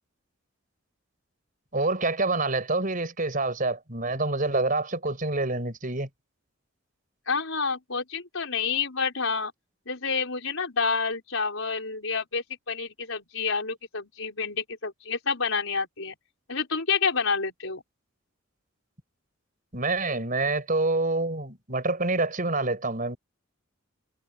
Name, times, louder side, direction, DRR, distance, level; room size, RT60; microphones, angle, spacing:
voice 1, 1.7-6.1 19.7-23.2, right 2 dB, 40° right, 4.9 m, -27 dB
voice 2, 7.3-9.5 9.9-16.2 16.5-17.8, left 5 dB, 70° left, 5.2 m, -29 dB
head